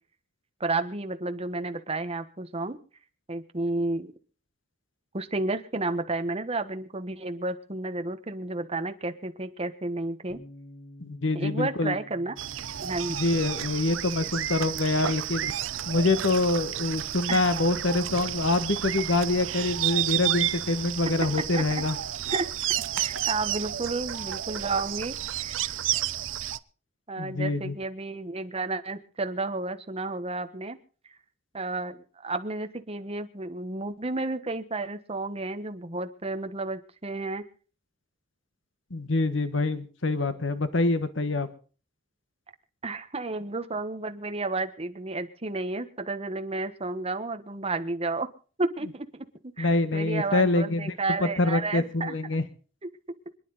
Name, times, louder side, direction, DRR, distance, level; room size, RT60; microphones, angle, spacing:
voice 1, 0.6-2.8 3.3-4.1 5.1-10.4 11.3-12.3 12.8-13.2 17.3-17.4 21.5-21.8 22.3-22.5 23.0-25.7 27.1-30.8 31.5-37.4 42.8-48.3 48.6-49.3 49.6-52.1, right 2 dB, 30° right, 9 dB, 1.3 m, -31 dB
Bass guitar, 10.3-16.5, left 1 dB, 90° left, 3.8 m, -51 dB
voice 2, 11.0-12.0 13.1-15.5 15.9-22.0 27.2-27.7 38.9-41.5 49.6-50.9 51.2-52.4, left 2 dB, 70° left, 11 dB, 1.4 m, -25 dB
sound 1, 12.4-26.6, right 12 dB, 75° right, 0.6 m, -31 dB
26.5 x 10.0 x 4.1 m, 0.39 s
head